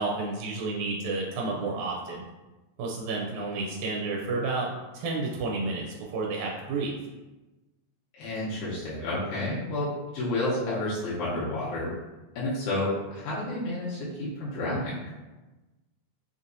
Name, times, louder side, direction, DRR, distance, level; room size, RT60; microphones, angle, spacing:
voice 1, 0.0-2.2 2.8-4.7 4.9-6.9, right 3 dB, 80° right, -2 dB, 1.9 m, -31 dB
voice 2, 8.2-11.9 12.4-14.9, left 1 dB, 80° left, -8 dB, 2.2 m, -30 dB
5.0 x 2.7 x 2.6 m, 1.1 s
omnidirectional pair, 3.4 m